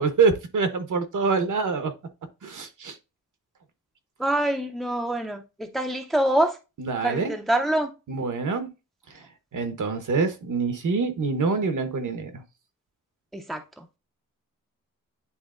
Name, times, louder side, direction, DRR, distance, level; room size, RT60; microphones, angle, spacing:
voice 1, 0.0-1.9 2.4-3.0 6.8-7.3 8.1-8.7 9.1-9.2 9.5-12.4, right 4 dB, 65° right, 1.1 m, -25 dB
voice 2, 4.2-6.6 7.0-7.9 13.3-13.8, right 1 dB, ahead, 0.6 m, -25 dB
9.9 x 3.9 x 2.5 m
wide cardioid pair, 165°, 33 cm